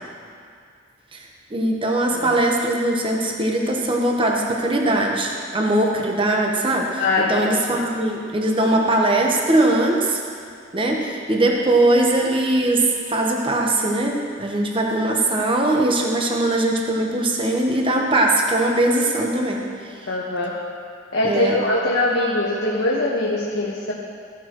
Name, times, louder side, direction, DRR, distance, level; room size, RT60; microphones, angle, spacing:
voice 1, 1.5-10.2 10.7-19.6 21.2-21.6, right 1 dB, 25° right, 0 dB, 1.0 m, -20 dB
voice 2, 7.0-7.8 20.1-20.6 21.1-23.9, left 2 dB, 90° left, -5 dB, 1.4 m, -22 dB
16.0 x 11.0 x 3.0 m, 2.2 s
head